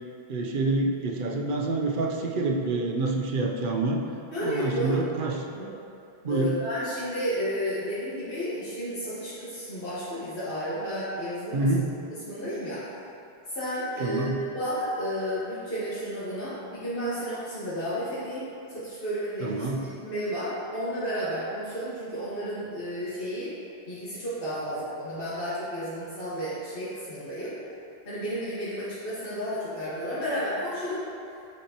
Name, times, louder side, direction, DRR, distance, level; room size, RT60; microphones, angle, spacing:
voice 1, 0.3-4.0 4.4-5.4 6.2-6.5 11.5-11.9 14.0-14.4 19.4-19.8, right 3 dB, 60° right, 1 dB, 0.8 m, -27 dB
voice 2, 4.3-5.0 5.5-5.7 6.3-11.6 12.3-12.8 13.5-23.5 23.9-27.5 28.0-31.0, equal, 60° left, -13 dB, 1.6 m, -32 dB
8.2 x 4.5 x 2.9 m, 2.6 s
omnidirectional pair, 1.1 m